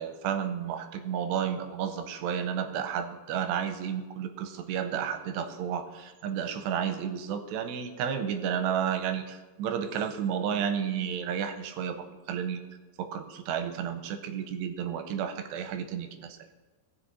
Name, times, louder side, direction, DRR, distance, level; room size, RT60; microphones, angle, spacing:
voice 1, 0.0-12.6 13.0-16.4, right 8 dB, 85° right, 8 dB, 2.8 m, -32 dB
18.0 x 6.5 x 4.0 m, 1.2 s
omnidirectional pair, 5.0 m